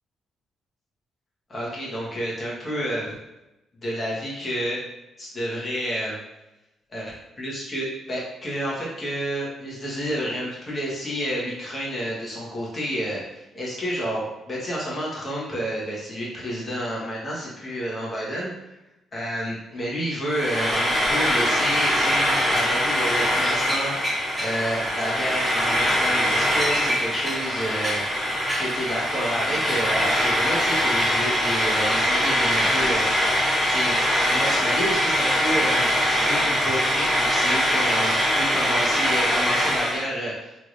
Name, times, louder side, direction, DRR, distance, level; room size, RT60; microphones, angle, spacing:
voice 1, 1.5-3.1 3.8-4.8 5.2-6.2 6.9-7.1 7.4-18.5 19.1-33.3 33.7-34.0 34.3-40.6, equal, 35° left, -5 dB, 1.3 m, -30 dB
Frying (food), 20.3-40.0, equal, 10° right, 1.4 m, -22 dB
3.2 x 2.8 x 2.6 m, 0.95 s
cardioid pair, 90°, 0 cm